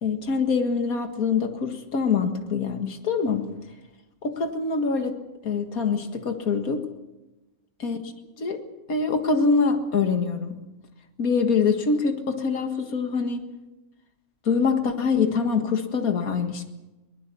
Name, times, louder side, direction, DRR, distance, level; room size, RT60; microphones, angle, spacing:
voice 1, 0.0-3.5 4.2-5.2 5.4-6.8 7.8-8.0 8.4-8.6 8.9-10.6 11.2-13.4 14.5-16.6, left 5 dB, 65° left, 6 dB, 2.2 m, -24 dB
22.0 x 20.0 x 6.9 m, 1.0 s
omnidirectional pair, 1.6 m